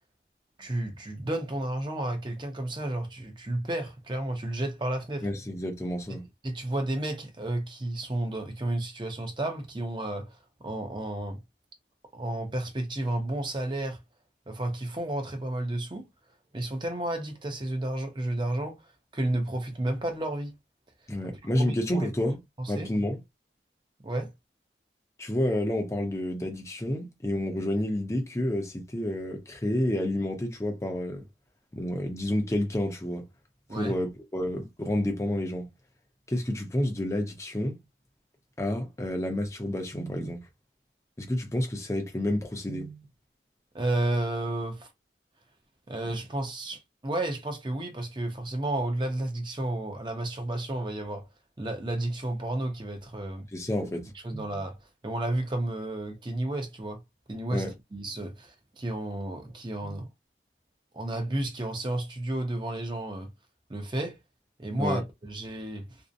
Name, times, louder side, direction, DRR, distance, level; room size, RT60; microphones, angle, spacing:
voice 1, 0.6-5.3 6.4-11.4 12.1-14.0 14.5-16.1 16.5-18.8 19.1-20.5 21.6-22.1 22.6-22.9 24.0-24.3 33.7-34.0 43.7-44.9 45.9-51.3 51.6-53.5 54.2-54.8 55.0-57.0 57.3-57.6 57.9-60.1 60.9-63.3 63.7-64.2 64.6-65.9, right 1 dB, 25° right, 0.6 m, -32 dB
voice 2, 5.2-6.2 21.1-22.4 22.7-23.2 25.2-31.2 31.7-33.2 33.7-35.7 36.3-37.8 38.6-40.4 41.2-43.0 53.5-54.0 54.3-54.5 57.5-57.7 59.8-60.0 64.8-65.0, left 1 dB, 15° left, 0.5 m, -29 dB
2.6 x 2.0 x 2.5 m
head